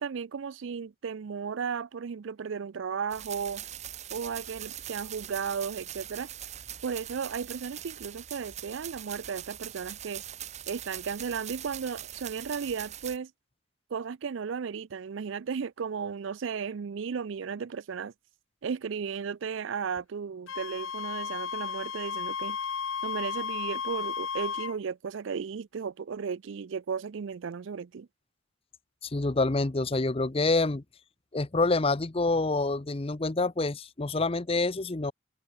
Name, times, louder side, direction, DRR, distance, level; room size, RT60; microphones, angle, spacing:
voice 1, 0.0-3.6 4.1-6.3 6.8-10.2 10.7-13.3 13.9-18.1 18.6-22.6 23.0-28.1, right 6 dB, 65° right, 0.4 m, -35 dB
sound 1, 3.1-13.2, right 11 dB, 35° right, 0.7 m, -42 dB
Wind instrument woodwind instrument, 20.5-24.8, left 6 dB, 80° left, 1.0 m, -34 dB
voice 2, 29.0-30.8 31.3-35.1, left 3 dB, 30° left, 0.7 m, -27 dB
head